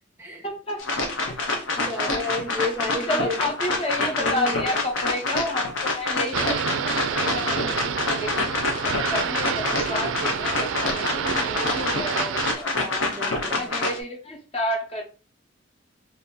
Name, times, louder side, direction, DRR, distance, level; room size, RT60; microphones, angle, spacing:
voice 1, 0.4-0.8 1.3-1.6 1.9-2.3 3.1-8.5 8.8-12.7 13.5-15.0, left 1 dB, 30° left, 1 dB, 0.9 m, -31 dB
sound 1, 0.8-14.0, left 2 dB, 75° left, 0.7 m, -27 dB
voice 2, 1.9-3.4 4.2-4.7 12.7-13.7, left 2 dB, 15° right, 1 dB, 0.6 m, -31 dB
sound 2, 6.3-12.5, right 7 dB, 75° right, 0.3 m, -28 dB
2.7 x 2.7 x 3.7 m, 0.35 s
head